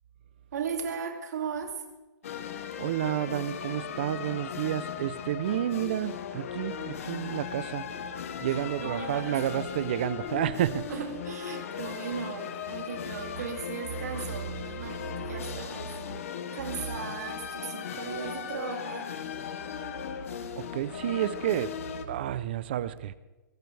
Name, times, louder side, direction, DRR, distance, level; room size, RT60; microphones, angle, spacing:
voice 1, 0.5-1.8 8.4-9.6 10.9-15.9 16.4-19.1 19.5-19.8, right 6 dB, 55° right, 2.7 m, -37 dB
sound 1, 2.2-22.1, left 8 dB, 45° left, 1.2 m, -38 dB
voice 2, 2.8-7.9 8.4-10.9 20.6-23.1, right 11 dB, 30° right, 0.6 m, -30 dB
22.0 x 16.0 x 3.4 m
hypercardioid pair, 180°, 11 cm